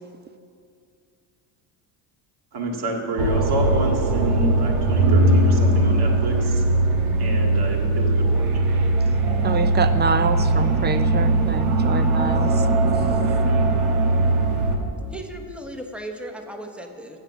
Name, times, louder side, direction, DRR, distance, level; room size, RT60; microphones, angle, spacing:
voice 1, 2.5-6.6 7.2-8.5, right 1 dB, 50° right, 1 dB, 2.0 m, -28 dB
sound 1, 3.2-14.8, right 2 dB, 80° right, 1.3 m, -20 dB
voice 2, 9.4-12.7, right 5 dB, 25° right, 11 dB, 0.3 m, -26 dB
voice 3, 15.1-17.2, right 1 dB, ahead, 4 dB, 0.9 m, -36 dB
8.1 x 7.3 x 6.9 m, 2.4 s
supercardioid pair, 90°, 50 cm